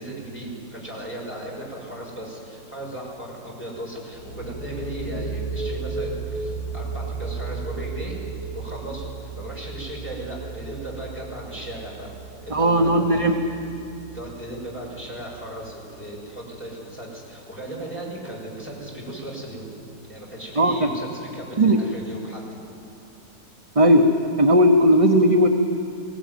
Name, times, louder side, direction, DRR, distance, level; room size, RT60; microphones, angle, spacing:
voice 1, 0.0-8.2 8.5-13.4 14.1-19.7 20.0-22.4, right 1 dB, 5° left, -4 dB, 6.0 m, -36 dB
sound 1, 4.1-15.6, right 4 dB, 90° left, 5.1 m, -34 dB
voice 2, 12.5-13.3 20.6-20.7 21.6-21.8 23.8-24.1 24.4-25.5, equal, 25° right, 3 dB, 0.8 m, -16 dB
21.5 x 17.5 x 9.4 m, 2.5 s
omnidirectional pair, 1.7 m